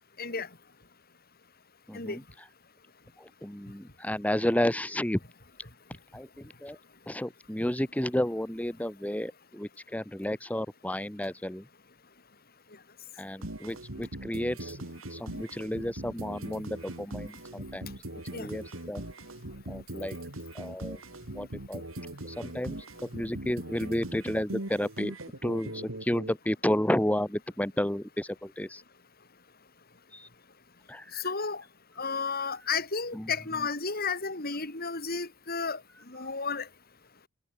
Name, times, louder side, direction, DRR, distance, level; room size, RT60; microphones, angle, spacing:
voice 1, 1.9-2.2 3.2-5.2 6.1-6.3 6.6-6.8 7.1-11.6 13.1-14.8 15.1-17.9 18.4-19.0 19.7-20.2 20.5-21.0 21.3-21.8 22.2-25.1 25.4-28.8 30.1-30.3 30.9-31.2 33.1-33.3, left 1 dB, 5° left, 1.2 m, -32 dB
sound 1, 13.4-26.3, right 1 dB, 85° right, 3.3 m, -40 dB
voice 2, 31.2-31.6 32.0-35.8 36.1-36.7, left 5 dB, 50° left, 5.6 m, -32 dB
head